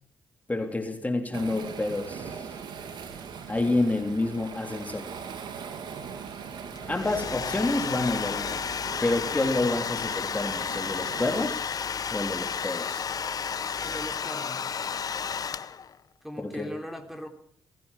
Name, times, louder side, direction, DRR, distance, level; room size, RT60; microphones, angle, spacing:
voice 1, 0.5-2.5 3.5-5.1 6.9-8.6 9.0-11.6 12.1-13.1 16.4-16.7, left 2 dB, 20° left, 4 dB, 3.5 m, -28 dB
Waves surf, 1.3-11.5, right 6 dB, 75° right, 3.3 m, -41 dB
Domestic sounds home sounds, 6.8-16.0, left 6 dB, 55° left, 1.0 m, -32 dB
voice 2, 13.8-14.8 16.2-17.3, equal, 5° right, 5 dB, 3.7 m, -39 dB
23.0 x 15.5 x 7.4 m, 0.65 s
cardioid pair, 65°, 8 cm